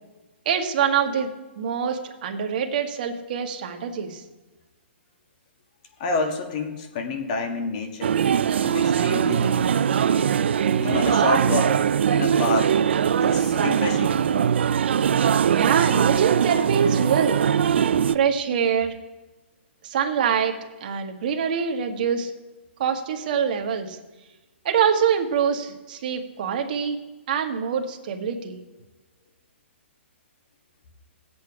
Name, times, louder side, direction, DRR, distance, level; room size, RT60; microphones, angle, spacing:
voice 1, 0.4-1.3 1.6-4.2 15.5-17.4 18.1-18.9 19.8-20.5 20.8-22.3 22.8-24.0 24.6-27.0 27.3-28.6, right 7 dB, 40° right, 4 dB, 1.4 m, -24 dB
voice 2, 6.0-8.2 8.6-9.8 10.8-11.7 12.1-12.8 13.2-14.2, left 4 dB, 35° left, 4 dB, 1.7 m, -28 dB
sound 1, 8.0-18.2, right 8 dB, 65° right, 0.4 m, -21 dB
18.0 x 8.1 x 4.8 m, 1.2 s
hypercardioid pair, 165°, 7 cm